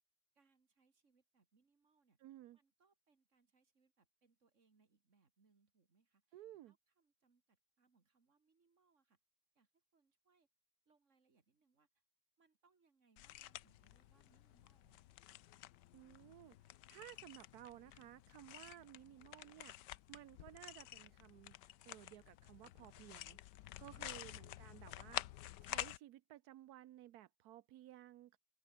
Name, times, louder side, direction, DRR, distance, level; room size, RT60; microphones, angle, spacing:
voice 1, 0.3-2.2 2.5-9.2 9.5-10.5 10.9-11.9 12.4-15.2 23.9-24.8, right 4 dB, 40° right, 2.6 m, -77 dB
voice 2, 2.2-2.6 6.3-6.7 15.9-21.5 21.8-23.4 23.8-25.2 25.6-28.4, right 13 dB, 70° right, 1.0 m, -57 dB
sound 1, 13.2-26.0, left 14 dB, 70° left, 1.2 m, -50 dB
open air
omnidirectional pair, 2.1 m